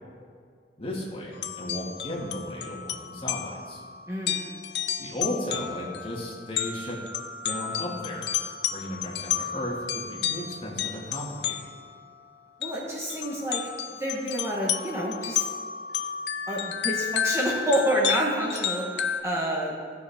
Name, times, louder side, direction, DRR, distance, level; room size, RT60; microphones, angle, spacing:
voice 1, 0.8-3.8 5.0-7.0 7.4-8.2 8.7-11.6, left 1 dB, 30° left, -4 dB, 2.1 m, -35 dB
sound 1, 1.3-11.9 12.6-12.7 13.1-19.2, left 8 dB, 70° left, 0.6 m, -32 dB
voice 2, 4.1-4.5 12.6-13.6 14.0-15.5 16.5-19.7, equal, 15° right, -4 dB, 1.3 m, -28 dB
16.5 x 6.8 x 3.6 m, 2.1 s
head